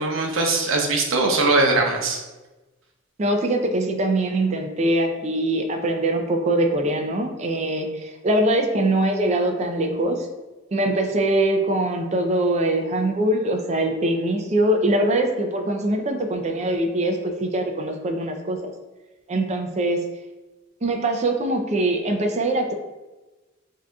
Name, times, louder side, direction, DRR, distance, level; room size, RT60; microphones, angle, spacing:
voice 1, 0.0-2.2, right 2 dB, 75° right, 1 dB, 0.8 m, -21 dB
voice 2, 3.2-10.3 10.7-18.6 19.3-20.0 20.8-22.7, right 1 dB, 35° right, 4 dB, 0.5 m, -22 dB
7.5 x 2.7 x 2.3 m, 1.1 s
head